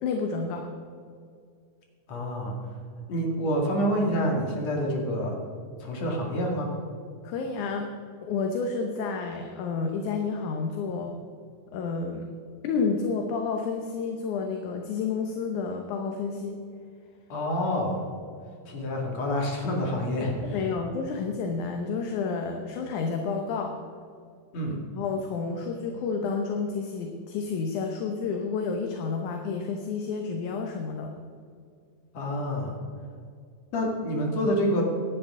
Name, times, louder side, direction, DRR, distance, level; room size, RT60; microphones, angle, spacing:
voice 1, 0.0-0.7 7.2-7.9 8.2-11.1 11.7-12.3 12.6-16.6 20.1-20.3 20.5-23.8 25.0-31.1, left 5 dB, 75° left, 4 dB, 2.3 m, -30 dB
voice 2, 2.1-2.5 3.1-5.4 5.8-6.7 17.3-18.0 18.6-20.6 24.5-24.8 32.1-32.7 33.7-34.8, equal, 55° left, 0 dB, 3.3 m, -27 dB
17.0 x 11.5 x 3.7 m, 2.3 s
omnidirectional pair, 3.7 m